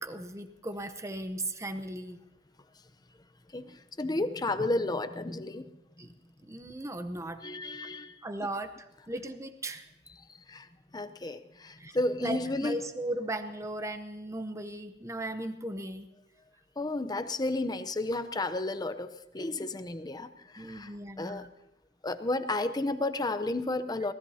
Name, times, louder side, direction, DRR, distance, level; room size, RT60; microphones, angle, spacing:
voice 1, 0.0-2.2 6.0-6.1 6.5-7.4 8.2-8.7 9.1-9.8 11.8-16.1 20.6-21.5, right 1 dB, 15° right, 8 dB, 0.8 m, -37 dB
voice 2, 4.0-5.6 7.4-8.1 10.5-10.6 10.9-12.8 16.8-20.3 20.5-20.9 21.2-21.4 22.0-24.1, left 2 dB, 20° left, 11 dB, 0.7 m, -32 dB
24.5 x 18.5 x 2.8 m, 0.89 s
head